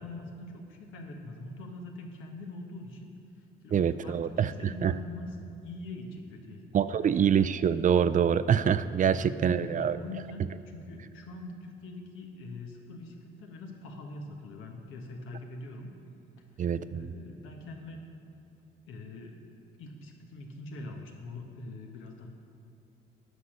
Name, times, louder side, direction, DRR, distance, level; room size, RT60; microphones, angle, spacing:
voice 1, 0.0-3.1 3.6-7.1 9.1-15.9 16.9-18.0 18.9-19.4 19.8-22.3, left 2 dB, 90° left, 2 dB, 1.3 m, -43 dB
voice 2, 3.7-4.5 4.8-4.9 6.7-10.0 16.6-17.1, right 8 dB, 40° right, 14 dB, 0.4 m, -25 dB
9.8 x 6.4 x 6.6 m, 2.6 s
cardioid pair, 90°, 20 cm